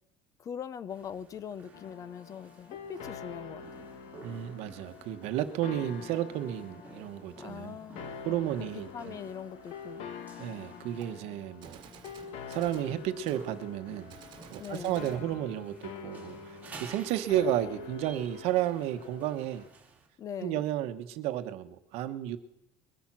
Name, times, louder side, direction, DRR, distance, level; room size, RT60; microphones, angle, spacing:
voice 1, 0.4-3.9 7.4-8.1 8.6-8.7 8.9-10.0 14.6-15.1 20.2-20.6, left 8 dB, 30° left, 17 dB, 0.6 m, -41 dB
sound 1, 0.9-20.1, right 4 dB, 15° right, 2.2 m, -53 dB
sound 2, 1.7-19.7, left 6 dB, 60° left, 1.2 m, -46 dB
voice 2, 4.2-7.8 8.2-9.1 10.4-11.8 12.5-14.1 14.5-19.6 20.4-22.4, right 12 dB, 60° right, 10 dB, 1.1 m, -32 dB
Gunshot gunfire, 11.0-11.1 11.6-12.9 13.3-13.5 14.1-15.2, right 8 dB, 40° right, 1.6 m, -52 dB
22.0 x 8.8 x 6.1 m, 0.85 s
cardioid pair, 170°, 12 cm